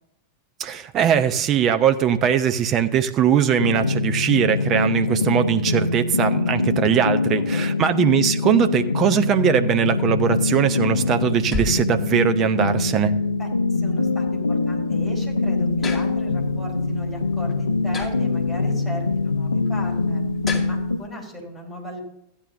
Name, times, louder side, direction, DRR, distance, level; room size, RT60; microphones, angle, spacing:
voice 1, 0.6-13.1, right 8 dB, 30° right, 9 dB, 0.9 m, -20 dB
sound 1, 3.6-21.0, left 3 dB, 80° left, 0.5 m, -23 dB
voice 2, 7.3-8.1 13.4-20.2 20.7-22.0, equal, 5° right, -1 dB, 4.6 m, -37 dB
sound 2, 10.4-21.1, left 3 dB, 10° left, 2.3 m, -38 dB
15.5 x 10.0 x 2.7 m, 0.83 s
figure-of-eight pair, 90°, 0 cm